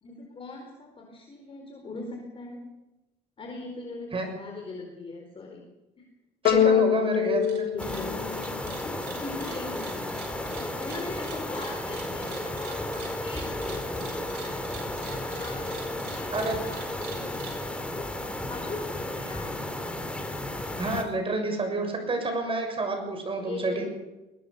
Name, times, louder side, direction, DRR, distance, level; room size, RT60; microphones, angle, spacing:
voice 1, 0.0-2.6 3.4-5.6 6.0-6.1 7.0-7.3 7.7-8.4 8.8-14.7 15.1-19.5 23.4-23.9, left 3 dB, 35° left, 2 dB, 4.3 m, -41 dB
voice 2, 6.4-7.7 16.3-16.6 20.8-23.9, right 3 dB, 30° right, 4 dB, 6.8 m, -29 dB
sound 1, 6.5-9.0, left 8 dB, 65° left, 2.2 m, -24 dB
sound 2, 7.3-7.6 7.8-17.6, right 8 dB, 90° right, 7.3 m, -45 dB
sound 3, 7.8-21.0, left 1 dB, 5° left, 3.5 m, -34 dB
22.0 x 19.0 x 6.7 m, 1.0 s
cardioid pair, 110°, 17 cm